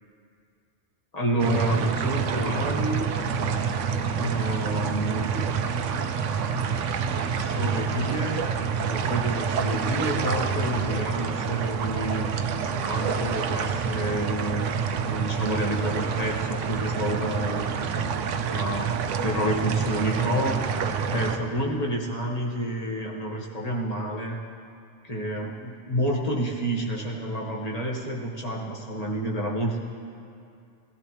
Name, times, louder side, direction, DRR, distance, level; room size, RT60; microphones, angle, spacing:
voice 1, 1.1-3.0 4.2-5.3 7.3-8.4 8.8-12.3 12.8-18.1 18.5-18.9 19.2-20.6 21.1-24.4 25.0-29.8, right 1 dB, 30° left, -3 dB, 1.8 m, -29 dB
sound 1, 1.4-21.4, right 6 dB, 80° right, 1.0 m, -27 dB
20.5 x 14.5 x 3.3 m, 2.5 s
omnidirectional pair, 1.2 m